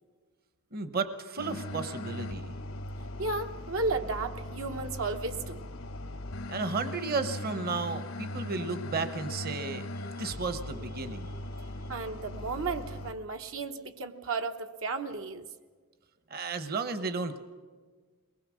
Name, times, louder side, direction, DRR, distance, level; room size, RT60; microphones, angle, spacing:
voice 1, 0.7-2.6 6.5-9.9 10.2-11.3 16.3-17.4, right 4 dB, 50° right, 11 dB, 0.9 m, -33 dB
sound 1, 1.4-13.1, left 1 dB, 85° left, 1.1 m, -39 dB
voice 2, 3.2-5.7 11.9-15.5, right 3 dB, 80° right, 5 dB, 1.1 m, -34 dB
22.5 x 20.0 x 6.3 m, 1.5 s
head